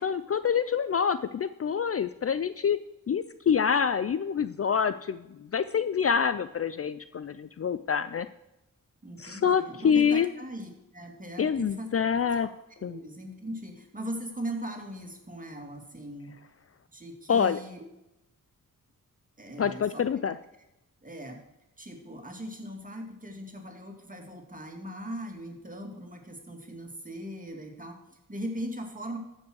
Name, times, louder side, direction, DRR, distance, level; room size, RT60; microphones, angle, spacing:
voice 1, 0.0-2.8 3.1-8.3 9.2-10.3 11.4-12.5 12.8-13.0 17.3-17.6 19.6-20.3, left 7 dB, 45° left, 13 dB, 0.5 m, -26 dB
voice 2, 9.0-11.9 12.8-16.3 16.9-17.8 19.4-20.1 21.0-21.4 21.8-29.2, right 1 dB, 25° right, 3 dB, 2.5 m, -39 dB
14.0 x 5.4 x 6.4 m, 0.92 s
cardioid pair, 65°, 34 cm